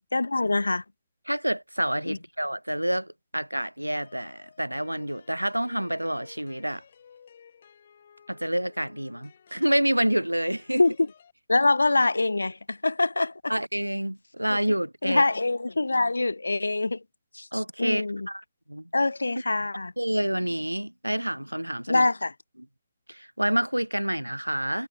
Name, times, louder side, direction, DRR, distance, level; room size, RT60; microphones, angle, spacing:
voice 1, 0.1-0.8 2.1-2.2 10.8-10.9 11.5-13.5 14.5-14.6 15.0-17.0 17.3-17.5 17.8-18.3 18.9-19.9 21.9-22.3, left 2 dB, 75° left, 0.5 m, -24 dB
voice 2, 1.3-6.8 8.3-10.8 13.5-15.2 17.5-18.9 20.0-22.0 23.1-24.9, right 1 dB, 90° right, 0.9 m, -28 dB
sound 1, 3.9-11.3, left 7 dB, 50° left, 4.0 m, -55 dB
figure-of-eight pair, 130°, 0 cm